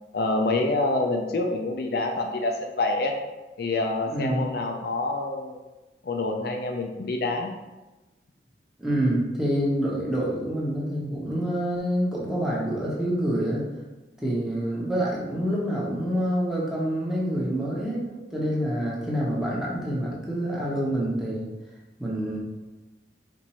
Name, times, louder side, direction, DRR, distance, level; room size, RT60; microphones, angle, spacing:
voice 1, 0.1-3.1 3.6-5.6 6.0-7.5, left 2 dB, 60° left, 2 dB, 0.4 m, -27 dB
voice 2, 4.1-4.5 8.8-13.6 14.2-21.5 22.0-22.4, equal, 5° right, -6 dB, 0.9 m, -27 dB
4.4 x 2.6 x 4.2 m, 1.1 s
head